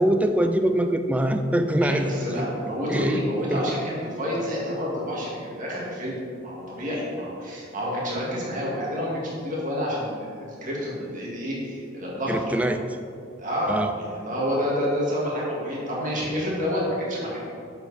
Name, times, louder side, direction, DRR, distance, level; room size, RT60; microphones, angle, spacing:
voice 1, 0.0-2.5 2.9-3.2 3.5-3.7 12.3-12.8 13.7-13.9, right 1 dB, 5° right, 7 dB, 0.3 m, -23 dB
voice 2, 1.8-6.2 6.4-12.5 13.4-17.4, equal, 40° right, -5 dB, 2.2 m, -28 dB
7.7 x 7.2 x 4.2 m, 2.4 s
head